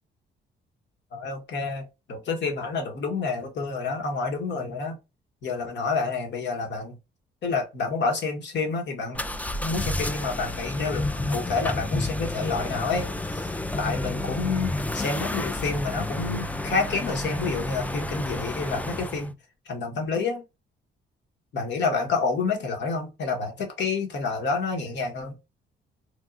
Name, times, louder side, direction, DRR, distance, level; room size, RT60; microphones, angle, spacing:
voice 1, 1.1-5.0 5.4-7.0 7.4-9.2 9.6-19.3 19.7-20.4 21.5-25.4, left 4 dB, 65° left, 1.3 m, -29 dB
sound 1, 9.1-19.3, left 2 dB, 5° left, 0.3 m, -30 dB
3.4 x 2.3 x 2.4 m
cardioid pair, 90°, 20 cm